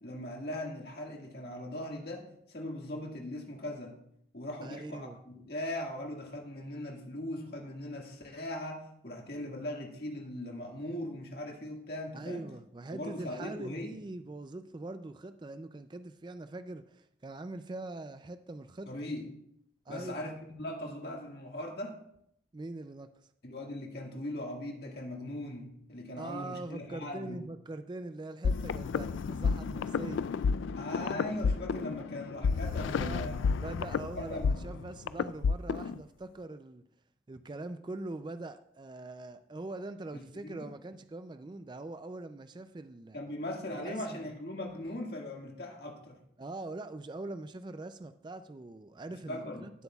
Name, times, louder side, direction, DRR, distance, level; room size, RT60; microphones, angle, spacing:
voice 1, 0.0-3.9 4.3-12.5 12.9-14.0 18.9-19.3 19.9-22.0 23.4-27.4 30.8-33.4 34.2-34.5 40.1-40.7 43.1-46.2 49.3-49.7, left 1 dB, 55° left, 1 dB, 1.8 m, -39 dB
voice 2, 4.6-5.2 12.1-18.9 19.9-20.3 22.5-23.1 26.2-30.2 32.7-36.8 37.3-43.2 43.7-44.3 46.4-49.7, right 2 dB, 25° right, 10 dB, 0.3 m, -42 dB
sound 1, 28.4-36.0, left 5 dB, 90° left, 0.3 m, -31 dB
16.5 x 8.1 x 2.3 m, 0.73 s
head